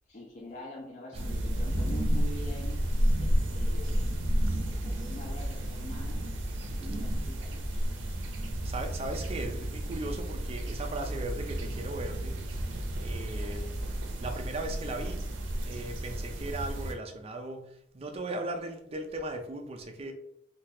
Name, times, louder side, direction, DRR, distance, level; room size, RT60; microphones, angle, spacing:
voice 1, 0.1-2.8 3.2-4.3 4.7-6.2 6.7-7.9, left 1 dB, 40° left, -3 dB, 0.5 m, -45 dB
sound 1, 1.1-16.9, equal, 90° right, 0.5 m, -31 dB
voice 2, 8.6-12.4 13.0-13.8 14.2-15.2 15.6-20.1, right 2 dB, 30° right, 4 dB, 0.4 m, -37 dB
3.8 x 2.3 x 2.7 m, 0.79 s
head